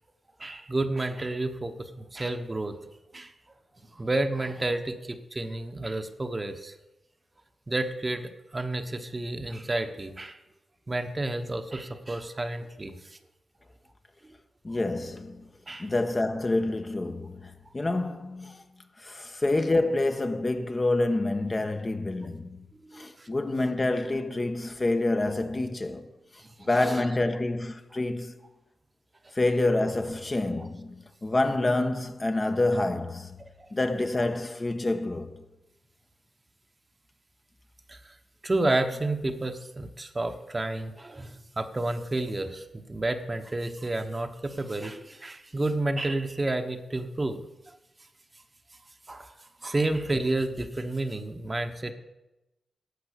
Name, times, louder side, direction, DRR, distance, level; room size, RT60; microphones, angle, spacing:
voice 1, 0.4-2.9 3.1-3.3 3.9-6.7 7.7-10.4 10.9-13.2 15.7-15.9 22.9-23.3 26.6-27.0 33.4-33.7 37.9-38.1 38.4-47.4 47.7-47.8 49.1-49.3 49.6-51.9, right 2 dB, 30° right, 1.2 m, -31 dB
voice 2, 14.6-15.5 15.8-18.6 19.0-22.7 22.9-26.1 26.7-28.4 29.3-33.4 33.7-35.4, left 2 dB, 35° left, 1.2 m, -27 dB
11.5 x 5.9 x 8.5 m
supercardioid pair, 45°, 0 cm